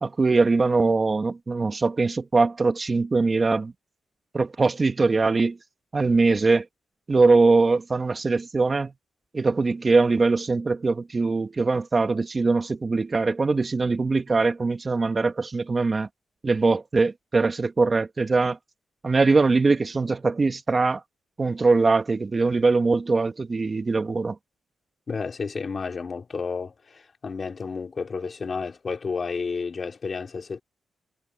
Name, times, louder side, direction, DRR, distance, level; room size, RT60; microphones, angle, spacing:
voice 1, 0.0-3.7 4.3-5.6 5.9-6.6 7.1-8.9 9.3-16.1 16.4-18.6 19.0-21.0 21.4-24.4, right 3 dB, 35° right, 1.6 m, -22 dB
voice 2, 25.1-30.6, left 5 dB, 45° left, 3.5 m, -31 dB
cardioid pair, 80°, 0 cm